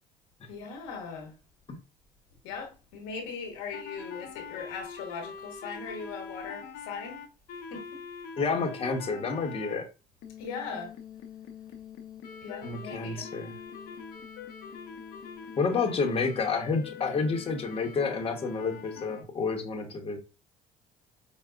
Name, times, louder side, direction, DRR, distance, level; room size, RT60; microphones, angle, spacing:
voice 1, 0.5-1.4 2.4-7.2 7.7-8.0 10.4-10.9 12.4-13.3, left 5 dB, 90° left, 1.0 m, -39 dB
sound 1, 3.7-9.8 10.2-19.2, left 6 dB, 70° left, 0.7 m, -43 dB
voice 2, 8.4-9.9 12.6-13.5 15.6-20.2, left 4 dB, 35° left, 0.9 m, -29 dB
4.8 x 2.2 x 2.3 m
supercardioid pair, 75°, 16 cm